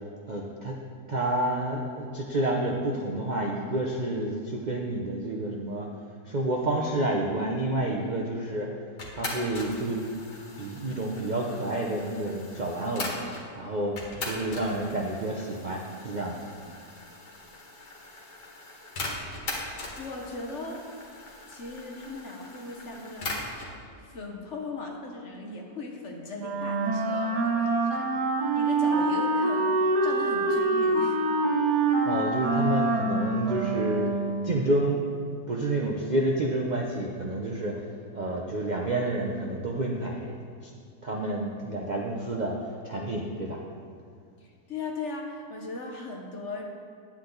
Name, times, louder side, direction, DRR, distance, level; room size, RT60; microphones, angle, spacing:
voice 1, 0.3-0.8 1.1-5.9 6.2-8.7 9.1-10.0 10.6-13.1 13.5-16.4 27.9-28.0 31.6-34.1 34.4-37.8 38.1-40.7 41.0-43.6, right 1 dB, 50° right, -1 dB, 0.5 m, -29 dB
sound 1, 9.0-13.5 14.0-23.8, left 2 dB, 75° left, 2.1 m, -40 dB
voice 2, 20.0-20.9 21.5-23.5 23.9-28.1 28.5-31.2 44.4-46.6, left 3 dB, 50° left, 1 dB, 1.1 m, -38 dB
Wind instrument woodwind instrument, 26.4-34.6, right 2 dB, 70° right, 1.7 m, -25 dB
9.7 x 8.8 x 3.9 m, 2.3 s
omnidirectional pair, 1.8 m